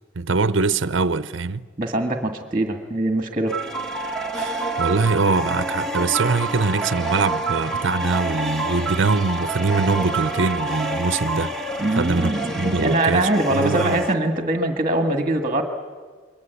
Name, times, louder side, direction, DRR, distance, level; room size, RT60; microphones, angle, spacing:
voice 1, 0.2-1.6 4.3-11.5 12.0-12.3 12.6-14.0, right 4 dB, 70° right, 0.7 m, -23 dB
voice 2, 1.8-3.5 11.8-15.6, right 1 dB, 25° right, 1.9 m, -22 dB
sound 1, 3.5-14.1, right 2 dB, ahead, 1.8 m, -27 dB
28.5 x 22.5 x 8.3 m
head